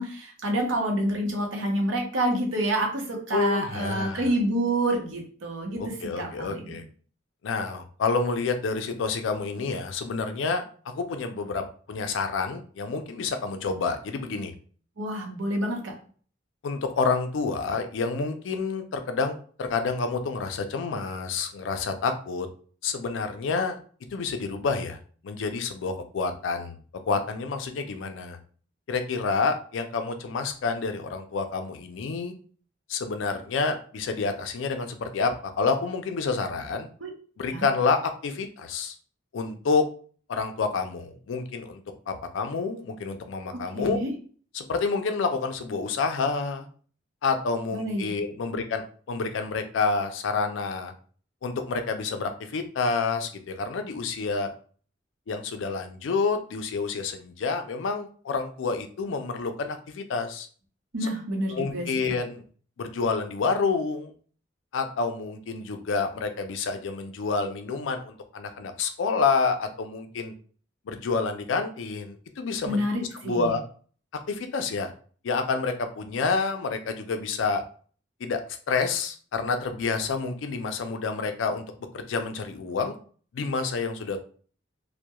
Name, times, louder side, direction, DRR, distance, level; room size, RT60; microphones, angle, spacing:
voice 1, 0.0-6.8 15.0-15.9 37.0-37.1 37.5-37.7 43.5-44.1 47.7-48.1 60.9-61.9 72.7-73.5, right 1 dB, 80° right, 1 dB, 0.7 m, -28 dB
voice 2, 3.3-4.3 5.8-6.8 7.4-10.6 10.9-14.5 16.6-22.5 22.8-23.8 24.1-25.0 25.2-26.8 27.1-28.4 28.9-32.3 32.9-36.9 37.4-38.9 39.3-39.8 40.3-41.8 42.1-44.0 44.5-46.7 47.2-50.9 51.4-54.5 55.3-60.5 61.5-62.4 62.8-64.1 64.7-70.3 70.9-72.8 73.2-73.6 74.3-74.9 75.2-77.6 78.2-78.4 78.7-81.7 81.9-82.9 83.3-84.2, left 4 dB, 70° left, 7 dB, 0.4 m, -28 dB
2.2 x 2.1 x 2.8 m, 0.43 s
head